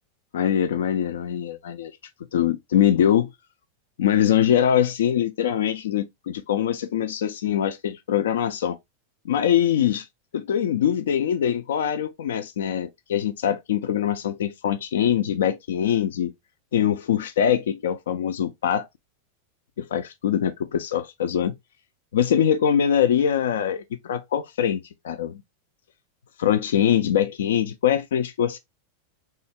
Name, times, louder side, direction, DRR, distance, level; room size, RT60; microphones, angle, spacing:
voice 1, 0.3-1.9 2.3-3.3 4.0-8.8 9.3-10.1 10.3-16.3 16.7-18.9 19.8-21.6 22.1-25.4 26.4-28.6, left 9 dB, 75° left, 0.3 m, -23 dB
3.1 x 2.3 x 2.7 m
hypercardioid pair, 100°, 0 cm